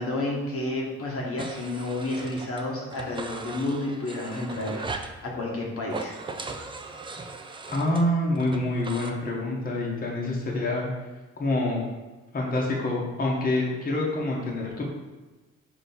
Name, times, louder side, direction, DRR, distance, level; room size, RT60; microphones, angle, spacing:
voice 1, 0.0-6.2, left 2 dB, 50° left, -3 dB, 1.0 m, -31 dB
sound 1, 1.4-2.6 2.9-5.2 5.8-9.1, right 3 dB, 15° right, 0.3 m, -38 dB
voice 2, 7.7-10.9 11.4-11.8 12.3-14.9, left 1 dB, 30° left, -2 dB, 1.0 m, -26 dB
3.8 x 2.9 x 4.2 m, 1.2 s
cardioid pair, 90°, 30 cm